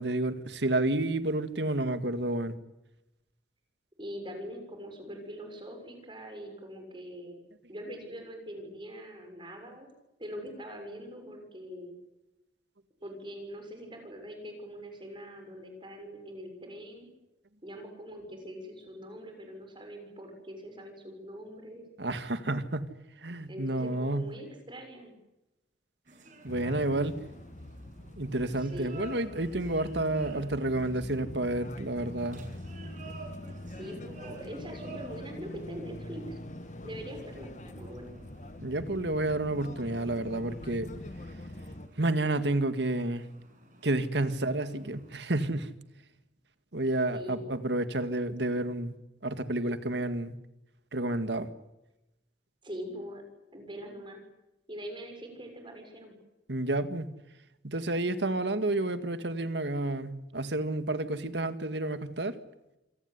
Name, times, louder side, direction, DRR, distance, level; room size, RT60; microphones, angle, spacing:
voice 1, 0.0-2.6 22.0-22.9 23.2-24.3 26.4-27.1 28.2-32.4 38.6-40.9 42.0-43.2 43.8-45.7 46.7-48.9 49.2-50.4 50.9-51.5 56.5-57.1 57.6-62.4, right 2 dB, 75° right, 11 dB, 2.0 m, -30 dB
voice 2, 4.0-7.4 7.7-9.9 10.2-11.9 13.0-17.1 17.6-21.8 23.5-25.1 28.6-29.0 33.8-36.4 36.8-38.1 47.1-47.6 52.6-53.2 53.5-54.2 54.7-56.1, equal, 25° right, 4 dB, 6.7 m, -43 dB
sound 1, 26.1-45.2, right 3 dB, 45° right, 7.2 m, -52 dB
sound 2, 26.5-41.9, left 1 dB, 40° left, 1.5 m, -44 dB
27.5 x 18.0 x 9.8 m, 0.94 s
head